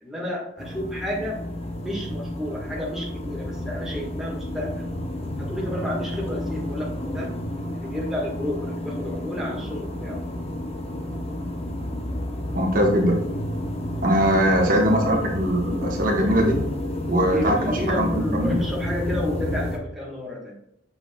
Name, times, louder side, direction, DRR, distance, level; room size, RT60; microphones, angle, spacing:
voice 1, 0.0-4.9 5.4-7.3 7.7-10.2 17.2-20.6, left 1 dB, ahead, -4 dB, 1.6 m, -31 dB
sound 1, 0.6-19.8, left 1 dB, 30° left, 0.9 m, -30 dB
voice 2, 12.5-13.1 14.0-16.6 17.1-18.6, equal, 40° right, 0 dB, 1.3 m, -21 dB
7.6 x 6.4 x 2.3 m, 0.78 s
head